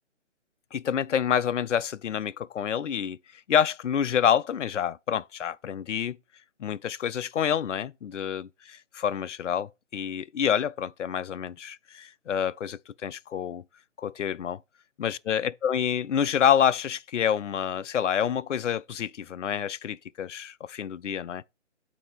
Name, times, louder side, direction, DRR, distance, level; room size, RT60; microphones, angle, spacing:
voice 1, 0.7-3.2 3.5-6.2 6.6-8.5 8.9-13.6 14.0-14.6 15.0-21.4, left 8 dB, 70° left, 0.5 m, -27 dB
8.2 x 2.8 x 5.6 m
figure-of-eight pair, 145°, 37 cm